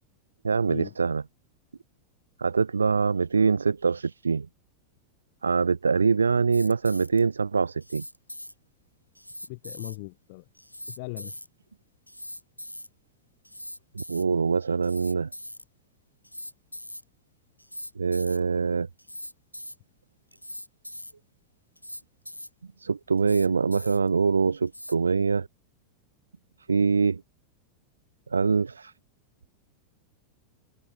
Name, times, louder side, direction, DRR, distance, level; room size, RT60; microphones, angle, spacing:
voice 1, 0.4-1.2 2.4-4.5 5.4-8.0 13.9-15.3 18.0-18.9 22.8-25.5 26.7-27.2 28.3-28.9, right 5 dB, 75° right, 0.7 m, -24 dB
sound 1, 6.5-7.2 7.8-8.5 9.2-10.0 10.6-11.5 12.1-12.9 13.4-14.2 14.8-15.6 16.2-17.0 17.6-18.4 19.0-19.8 20.3-21.1 21.8-22.5 23.2-24.1 24.7-25.0, left 1 dB, 90° left, 3.0 m, -41 dB
voice 2, 9.5-10.4 10.9-11.4, left 27 dB, 50° left, 4.5 m, -38 dB
open air
figure-of-eight pair, 90°, 0 cm